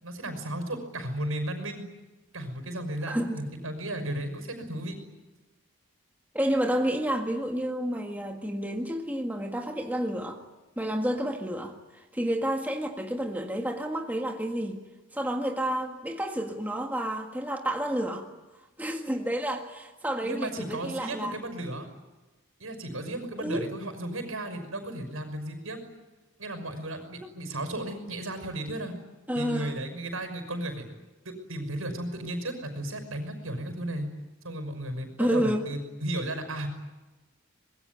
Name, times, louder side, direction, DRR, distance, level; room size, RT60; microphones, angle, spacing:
voice 1, 0.0-1.8 2.3-5.0 20.2-21.9 22.6-25.8 26.4-28.9 29.3-30.8 31.2-34.1 34.4-36.7, right 1 dB, 80° right, 8 dB, 5.9 m, -34 dB
voice 2, 3.0-3.4 6.3-10.4 10.8-14.8 15.1-18.3 18.8-21.4 23.4-23.7 29.3-29.8 35.2-35.7, right 1 dB, 10° right, 2 dB, 1.7 m, -30 dB
25.5 x 21.5 x 9.7 m, 1.1 s
head